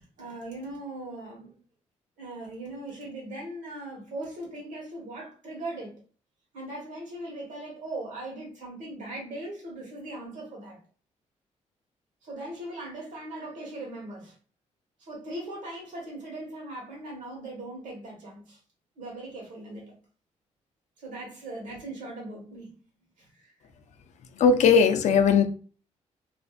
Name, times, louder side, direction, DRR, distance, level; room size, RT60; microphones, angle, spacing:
voice 1, 0.0-1.6 2.2-5.9 6.5-10.8 12.2-14.3 15.0-18.6 19.0-20.0 21.0-22.7 23.2-23.5, right 2 dB, 80° right, 1.4 m, -39 dB
voice 2, 24.4-25.4, left 6 dB, 65° left, 0.4 m, -18 dB
2.6 x 2.5 x 2.4 m
cardioid pair, 115°, 13 cm